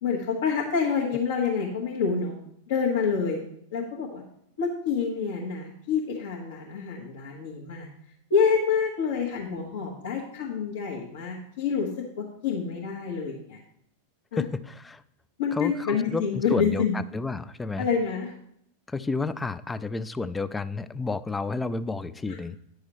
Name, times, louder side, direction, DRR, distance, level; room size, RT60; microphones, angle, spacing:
voice 1, 0.0-2.3 2.7-3.4 3.7-4.2 4.6-7.9 8.3-11.9 12.2-13.6 14.3-14.4 15.4-17.0 17.8-18.3, left 6 dB, 60° left, -4 dB, 1.3 m, -27 dB
voice 2, 14.3-15.0 15.5-17.9 18.9-22.6, left 3 dB, 10° left, 15 dB, 0.3 m, -31 dB
10.0 x 6.3 x 3.0 m, 0.73 s
figure-of-eight pair, 90°, 0 cm